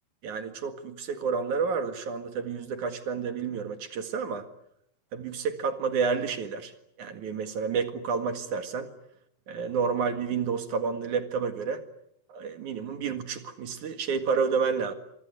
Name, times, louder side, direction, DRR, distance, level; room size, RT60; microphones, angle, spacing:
voice 1, 0.2-4.4 5.1-6.7 7.0-8.9 9.5-11.8 12.3-14.9, right 5 dB, 55° right, 8 dB, 3.0 m, -30 dB
28.0 x 24.0 x 8.1 m, 0.73 s
omnidirectional pair, 4.6 m